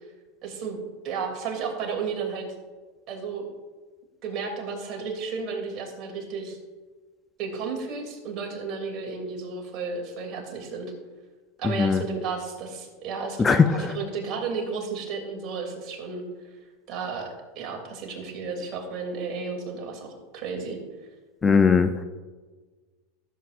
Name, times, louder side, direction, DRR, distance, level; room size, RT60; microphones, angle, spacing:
voice 1, 0.4-0.8 1.0-2.5 3.1-3.4 4.2-6.6 7.4-10.9 11.6-16.3 16.9-20.8, right 5 dB, 45° right, 1 dB, 2.8 m, -33 dB
voice 2, 21.4-22.0, left 5 dB, 20° left, 9 dB, 0.5 m, -19 dB
15.0 x 7.6 x 2.5 m, 1.3 s
hypercardioid pair, 105°, 0 cm